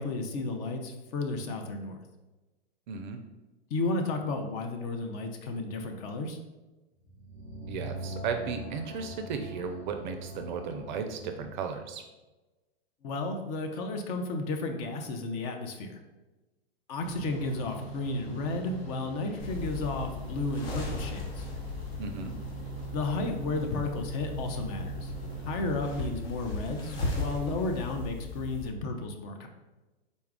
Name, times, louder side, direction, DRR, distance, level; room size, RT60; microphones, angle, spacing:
voice 1, 0.0-2.0 3.7-6.4 13.0-16.0 16.9-21.5 22.9-25.1 25.5-29.5, left 3 dB, 40° left, 4 dB, 0.5 m, -33 dB
voice 2, 2.9-3.2 7.7-12.1 22.0-22.3, right 6 dB, 50° right, 6 dB, 0.4 m, -35 dB
sound 1, 7.0-11.6, right 1 dB, 20° left, 1.2 m, -42 dB
sound 2, 17.0-25.8, right 3 dB, 90° left, 1.0 m, -41 dB
sound 3, 19.4-28.7, left 2 dB, 65° left, 1.2 m, -37 dB
4.0 x 2.3 x 3.5 m, 1.1 s
hypercardioid pair, 110°, 31 cm